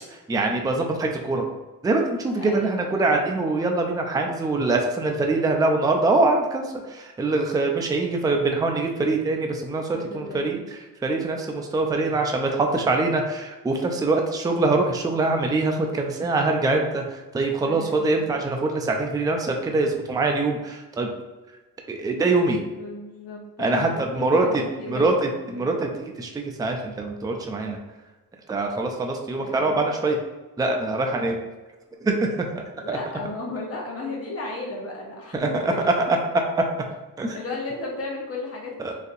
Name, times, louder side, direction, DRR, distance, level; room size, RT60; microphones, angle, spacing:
voice 1, 0.3-1.5 1.8-10.6 11.0-21.1 21.9-22.6 23.6-24.6 24.9-27.8 28.5-30.2 30.6-31.4 32.0-33.0 35.3-35.9 37.2-37.4 38.8-38.9, right 3 dB, 10° right, 2 dB, 0.3 m, -24 dB
voice 2, 2.4-3.2 9.9-10.7 17.6-18.4 22.8-25.1 25.5-25.7 29.4-29.9 32.8-36.0 37.3-38.9, left 2 dB, 40° left, -2 dB, 1.0 m, -35 dB
4.0 x 2.7 x 2.6 m, 1.2 s
cardioid pair, 115°, 35 cm